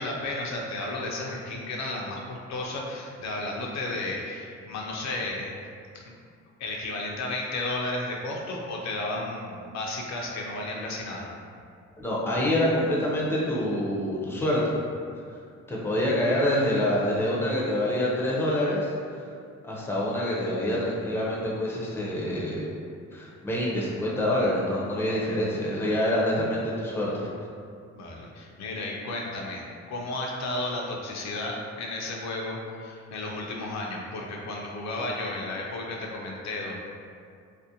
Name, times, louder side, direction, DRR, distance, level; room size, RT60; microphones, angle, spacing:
voice 1, 0.0-5.6 5.9-6.0 6.6-11.3 27.9-36.8, left 2 dB, 65° left, -1 dB, 0.4 m, -33 dB
voice 2, 12.0-14.6 15.7-19.2 19.6-22.7 23.1-27.3, left 1 dB, 10° left, -5 dB, 0.5 m, -26 dB
2.5 x 2.0 x 2.7 m, 2.3 s
cardioid pair, 90°, 30 cm